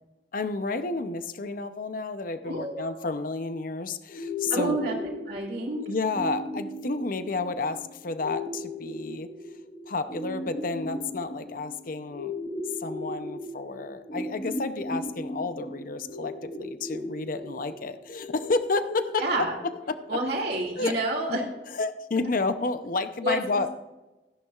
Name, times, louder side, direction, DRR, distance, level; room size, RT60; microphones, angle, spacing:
voice 1, 0.3-4.8 5.9-9.3 9.9-12.4 12.8-19.2 19.9-20.0 20.8-21.0 21.3-21.4 21.7-23.7, left 3 dB, 55° left, 10 dB, 0.7 m, -30 dB
voice 2, 2.4-3.1 4.5-5.0 5.3-5.8 19.2-19.6 20.1-21.4 23.2-23.4, right 2 dB, 65° right, -3 dB, 2.5 m, -29 dB
sound 1, 4.1-20.1, left 1 dB, 35° left, 1.4 m, -37 dB
16.0 x 11.0 x 2.4 m, 1.0 s
head